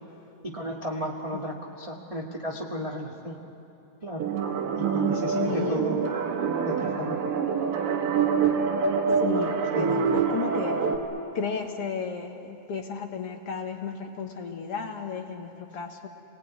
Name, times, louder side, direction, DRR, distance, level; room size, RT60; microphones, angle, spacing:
voice 1, 0.4-3.4 4.0-4.2 4.7-6.0 6.6-7.2 9.7-10.2, equal, 20° right, -1 dB, 1.0 m, -33 dB
sound 1, 4.2-11.0, right 6 dB, 80° right, 3.5 m, -26 dB
voice 2, 5.3-5.9 9.2-10.9 11.3-16.1, left 6 dB, 50° left, 3 dB, 2.1 m, -33 dB
28.5 x 20.5 x 9.6 m, 2.7 s
omnidirectional pair, 3.9 m